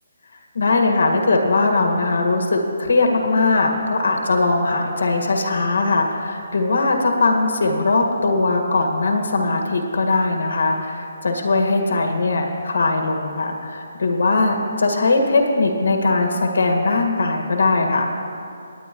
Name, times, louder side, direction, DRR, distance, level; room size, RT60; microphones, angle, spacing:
voice 1, 0.6-18.1, left 3 dB, 80° left, 2 dB, 1.7 m, -20 dB
19.5 x 9.3 x 3.1 m, 2.5 s
hypercardioid pair, 170°, 0 cm